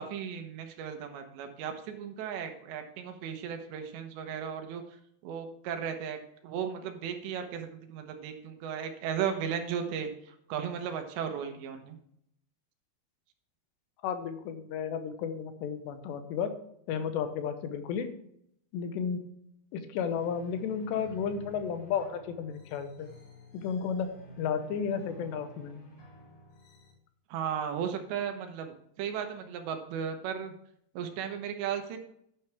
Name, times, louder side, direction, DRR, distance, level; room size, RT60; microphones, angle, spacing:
voice 1, 0.0-4.8 5.2-6.2 6.4-12.0 27.3-30.5 31.0-32.0, right 8 dB, 80° right, 6 dB, 3.4 m, -35 dB
voice 2, 14.0-16.5 16.9-18.1 18.7-19.3 19.7-23.1 23.5-25.8, left 7 dB, 80° left, 9 dB, 3.0 m, -33 dB
sound 1, 20.1-26.9, right 1 dB, 55° left, 3.6 m, -50 dB
10.5 x 9.9 x 3.5 m, 0.72 s
omnidirectional pair, 5.0 m